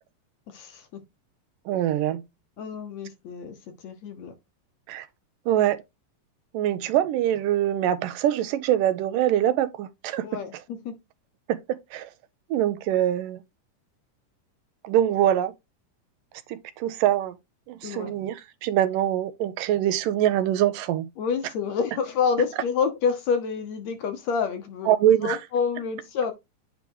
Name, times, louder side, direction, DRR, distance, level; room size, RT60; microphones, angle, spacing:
voice 1, 0.5-1.0 2.6-3.6 3.8-4.3 10.2-10.5 10.8-10.9 17.8-18.2 21.2-24.9 25.2-26.3, left 6 dB, 65° left, 2.0 m, -28 dB
voice 2, 1.7-2.2 4.9-5.1 5.5-5.8 6.5-10.4 11.5-12.1 12.5-13.4 14.8-15.5 16.5-17.4 17.7-21.1 24.9-25.4, right 11 dB, 80° right, 2.3 m, -24 dB
8.9 x 3.5 x 4.7 m
omnidirectional pair, 3.9 m